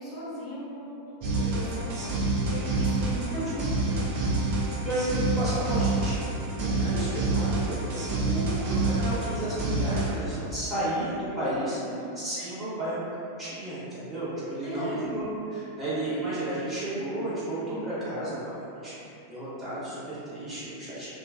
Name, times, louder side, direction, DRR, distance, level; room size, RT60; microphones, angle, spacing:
voice 1, 0.0-4.0 11.5-12.1 14.6-15.1 16.1-16.2 17.7-17.8, equal, 30° left, -11 dB, 0.8 m, -38 dB
sound 1, 1.2-10.1, right 2 dB, 50° right, 0.6 m, -27 dB
voice 2, 4.8-6.2 6.5-11.8 12.2-13.0 13.4-18.9 19.3-21.1, right 1 dB, 15° right, -12 dB, 1.0 m, -32 dB
2.4 x 2.2 x 2.4 m, 2.7 s
figure-of-eight pair, 90°, 0 cm